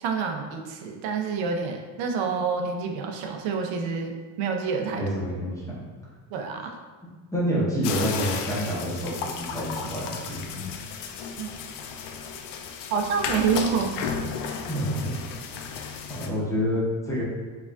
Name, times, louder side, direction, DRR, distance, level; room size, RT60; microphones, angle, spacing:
voice 1, 0.0-4.1 4.4-5.0 6.3-6.8 11.4-11.5 12.9-14.0, right 5 dB, 80° right, 3 dB, 0.7 m, -27 dB
voice 2, 4.9-5.6 7.3-10.4 14.7-15.1 15.5-15.6 16.1-17.2, equal, 5° left, -8 dB, 0.6 m, -27 dB
sound 1, 7.8-16.3, left 6 dB, 65° left, 0.5 m, -34 dB
4.8 x 2.4 x 3.5 m, 1.4 s
cardioid pair, 180°, 46 cm